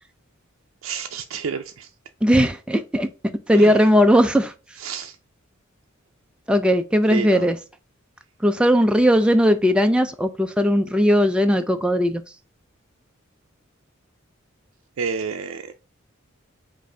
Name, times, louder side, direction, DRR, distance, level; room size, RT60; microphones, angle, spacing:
voice 1, 0.8-1.9 3.5-3.8 4.8-5.1 7.1-7.5 15.0-15.7, right 5 dB, 70° right, 0.4 m, -29 dB
voice 2, 2.2-3.1 3.5-4.5 6.5-7.6 8.4-12.2, equal, 5° right, 0.3 m, -18 dB
5.3 x 2.6 x 3.8 m
head